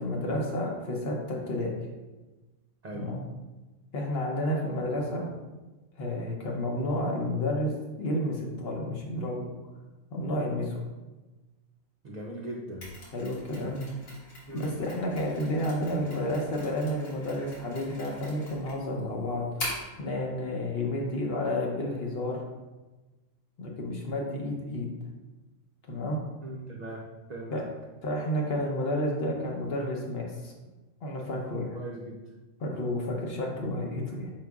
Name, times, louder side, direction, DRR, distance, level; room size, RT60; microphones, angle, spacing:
voice 1, 0.0-1.7 2.9-3.2 3.9-5.3 6.0-7.7 8.0-9.5 10.1-10.8 13.1-13.8 14.5-22.4 23.6-24.9 25.9-26.2 27.5-27.6 28.0-30.5 31.0-31.8 32.6-34.3, left 1 dB, 55° left, 0 dB, 0.9 m, -31 dB
voice 2, 12.0-12.9 14.5-14.7 26.4-27.5 31.7-32.2, right 1 dB, 65° right, -2 dB, 0.4 m, -39 dB
Mechanisms, 12.8-20.0, left 1 dB, 85° left, 1.8 m, -42 dB
4.9 x 4.6 x 2.3 m, 1.2 s
omnidirectional pair, 1.4 m